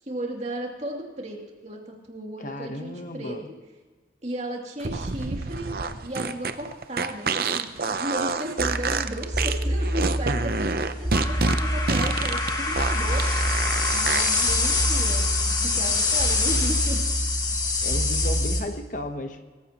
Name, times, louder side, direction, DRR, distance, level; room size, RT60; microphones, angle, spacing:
voice 1, 0.0-3.3 4.2-13.3 13.9-17.0, right 1 dB, 40° right, -1 dB, 2.7 m, -35 dB
voice 2, 2.4-3.5 17.8-19.4, left 1 dB, 45° left, 7 dB, 1.0 m, -34 dB
sound 1, 4.8-14.4, right 4 dB, 55° right, 0.7 m, -28 dB
sound 2, 8.6-18.6, left 2 dB, 25° left, 1.7 m, -24 dB
25.0 x 14.5 x 3.0 m, 1.4 s
head